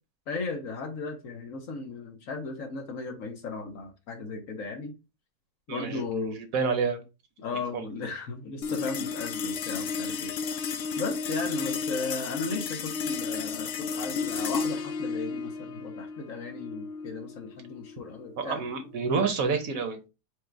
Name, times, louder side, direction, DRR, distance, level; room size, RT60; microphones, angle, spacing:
voice 1, 0.3-4.9 5.7-6.4 7.4-10.3 10.6-18.6, left 4 dB, 60° left, 1.2 m, -36 dB
voice 2, 5.7-6.2 6.5-7.0 7.7-7.8 18.4-20.0, right 5 dB, 60° right, 1.2 m, -28 dB
sound 1, 8.6-19.2, left 5 dB, 90° left, 0.5 m, -33 dB
4.8 x 2.3 x 4.5 m
omnidirectional pair, 1.7 m